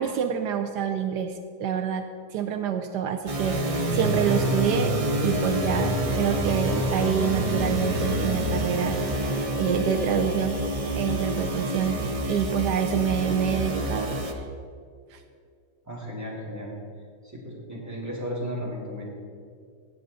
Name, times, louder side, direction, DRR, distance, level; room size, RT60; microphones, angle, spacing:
voice 1, 0.0-5.0 5.2-9.0 9.6-10.6 11.0-12.0 12.3-14.4 15.1-15.2, right 8 dB, 80° right, 7 dB, 1.2 m, -27 dB
sound 1, 3.3-14.3, equal, 30° right, 0.6 m, -29 dB
sound 2, 3.5-9.5, right 2 dB, 65° right, 1.6 m, -29 dB
voice 2, 15.8-16.7 17.3-19.0, equal, 10° right, -4 dB, 2.6 m, -34 dB
17.5 x 7.8 x 4.1 m, 2.3 s
omnidirectional pair, 1.8 m